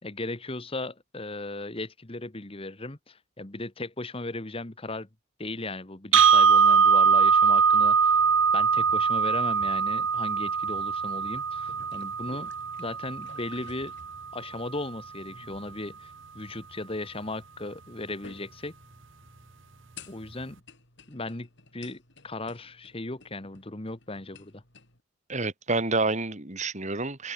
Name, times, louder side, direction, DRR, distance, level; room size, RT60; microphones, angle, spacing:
voice 1, 0.0-5.1 5.4-8.2 8.5-12.5 12.8-13.9 14.3-18.7 20.1-20.6 21.1-21.5 21.7-24.6, left 2 dB, 25° left, 1.4 m, -37 dB
sound 1, 6.1-14.2, right 6 dB, 65° right, 1.5 m, -22 dB
sound 2, 11.4-25.0, left 4 dB, 60° left, 7.8 m, -54 dB
voice 2, 25.3-27.3, right 3 dB, 35° right, 2.6 m, -28 dB
head